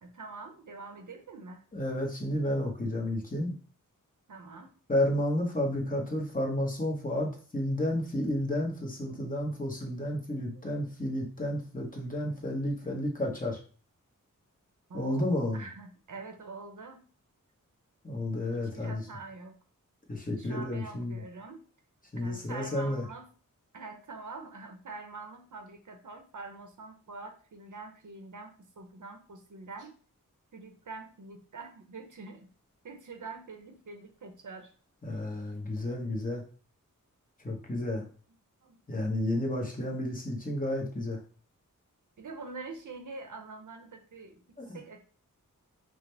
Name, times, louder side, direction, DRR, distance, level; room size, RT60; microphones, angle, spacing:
voice 1, 0.0-1.6 4.3-4.8 10.5-10.8 14.9-17.0 18.5-19.6 20.4-21.6 22.2-23.3 23.7-29.9 30.5-32.5 32.8-34.7 38.6-38.8 42.2-44.4 44.7-45.0, right 3 dB, 65° right, 4 dB, 0.8 m, -45 dB
voice 2, 1.7-3.5 4.9-13.6 14.9-15.6 18.0-19.0 20.1-21.2 22.1-23.0 35.0-36.4 37.4-38.1 38.9-41.2 44.6-44.8, left 1 dB, 25° left, 0 dB, 1.0 m, -31 dB
4.9 x 2.1 x 3.2 m, 0.40 s
wide cardioid pair, 100°, 33 cm